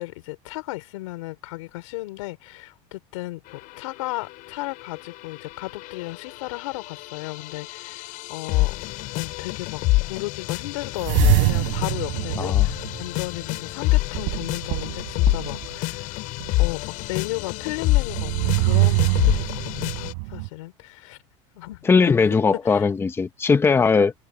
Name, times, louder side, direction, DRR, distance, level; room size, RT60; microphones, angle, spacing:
voice 1, 0.0-8.8 9.2-16.3 16.6-21.2 21.5-22.0 22.6-22.9, left 20 dB, 85° left, 3.8 m, -35 dB
sound 1, 3.5-20.1, left 20 dB, 55° left, 7.3 m, -27 dB
sound 2, 11.0-13.4 14.1-15.7 16.4-16.5 18.0-20.5, right 36 dB, 70° right, 4.5 m, -24 dB
voice 2, 21.8-24.1, left 5 dB, 15° left, 1.1 m, -19 dB
supercardioid pair, 135°, 16 cm